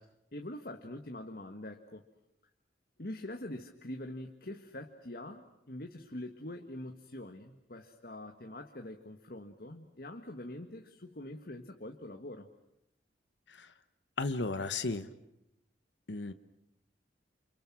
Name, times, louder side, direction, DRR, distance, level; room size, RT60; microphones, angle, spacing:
voice 1, 0.3-2.0 3.0-12.5, left 1 dB, 55° left, 4 dB, 1.6 m, -44 dB
voice 2, 14.2-15.1 16.1-16.3, left 3 dB, 80° left, 10 dB, 1.1 m, -34 dB
29.5 x 28.5 x 6.2 m, 0.84 s
head